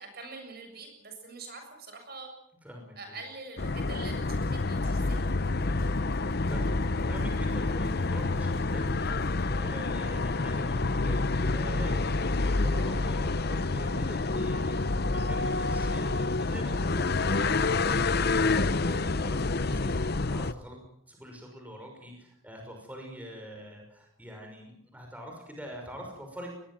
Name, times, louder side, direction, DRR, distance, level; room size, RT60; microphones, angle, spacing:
voice 1, 0.0-2.3 3.0-5.3, right 3 dB, 50° right, 5 dB, 7.3 m, -45 dB
voice 2, 2.6-3.2 6.5-26.6, equal, 5° right, 1 dB, 5.8 m, -44 dB
sound 1, 3.6-20.5, left 3 dB, 50° left, 0.8 m, -28 dB
sound 2, 4.1-9.5, left 1 dB, 80° left, 3.4 m, -56 dB
21.5 x 21.0 x 7.6 m, 0.73 s
head